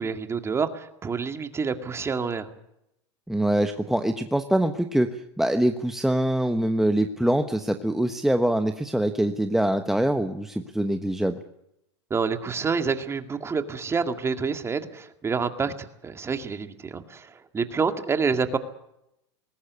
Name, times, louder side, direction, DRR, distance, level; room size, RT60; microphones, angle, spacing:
voice 1, 0.0-2.5 12.1-18.6, right 5 dB, 20° right, 2.1 m, -28 dB
voice 2, 3.3-11.4, right 1 dB, ahead, 1.2 m, -24 dB
20.5 x 18.5 x 8.3 m
hypercardioid pair, 115°, 14 cm